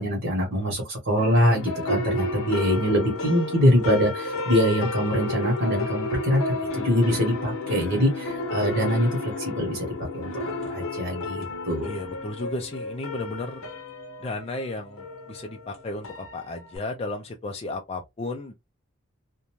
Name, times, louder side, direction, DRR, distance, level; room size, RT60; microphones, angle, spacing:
voice 1, 0.0-9.9 10.1-11.9, equal, 55° right, 1.0 m, -24 dB
sound 1, 1.2-16.8, left 2 dB, 80° left, 0.7 m, -32 dB
voice 2, 11.8-13.7 14.2-18.5, left 2 dB, 30° left, 0.3 m, -34 dB
2.5 x 2.2 x 3.0 m
head